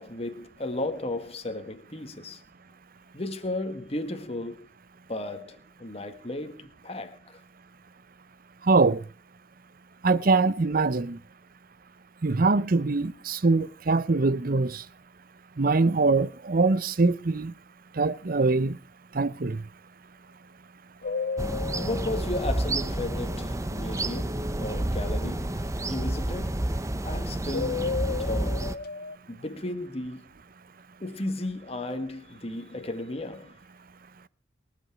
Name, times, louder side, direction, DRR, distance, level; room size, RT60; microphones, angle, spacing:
voice 1, 0.0-2.4 3.1-4.7 5.1-7.2 21.8-26.5 27.0-27.9 28.2-28.7 29.3-30.2 31.0-33.6, left 2 dB, 35° left, 1.8 m, -34 dB
voice 2, 8.7-9.0 10.0-11.2 12.2-14.8 15.6-17.5 18.0-18.8 19.1-19.6, right 3 dB, 50° right, 0.7 m, -23 dB
sound 1, 21.0-23.5 27.5-29.1, left 5 dB, 55° left, 0.7 m, -33 dB
sound 2, 21.4-28.8, right 1 dB, 15° right, 0.7 m, -30 dB
23.5 x 8.5 x 4.6 m
head